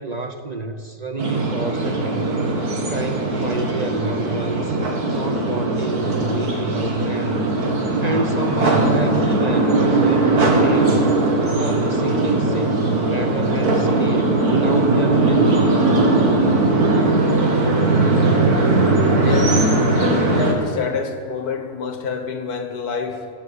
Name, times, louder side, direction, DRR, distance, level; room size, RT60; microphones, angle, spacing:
voice 1, 0.0-2.3 2.9-4.8 5.1-7.4 8.0-11.1 11.5-15.7, right 3 dB, 40° right, 7 dB, 0.6 m, -29 dB
sound 1, 1.2-20.5, right 2 dB, 80° right, 2.4 m, -19 dB
voice 2, 19.2-19.7 20.0-23.3, left 5 dB, 80° left, 6 dB, 1.9 m, -27 dB
19.5 x 8.7 x 8.3 m, 2.3 s
omnidirectional pair, 1.6 m